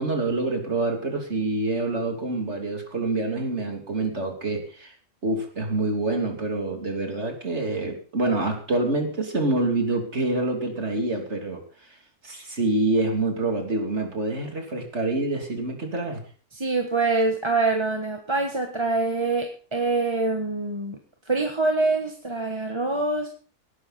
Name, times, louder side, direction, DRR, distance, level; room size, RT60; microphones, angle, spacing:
voice 1, 0.0-4.9 5.2-11.6 12.2-16.2, right 2 dB, 50° right, 2 dB, 3.4 m, -26 dB
voice 2, 16.5-21.0 21.3-23.3, right 3 dB, 20° right, 3 dB, 1.4 m, -25 dB
18.5 x 11.5 x 4.3 m, 0.41 s
omnidirectional pair, 1.5 m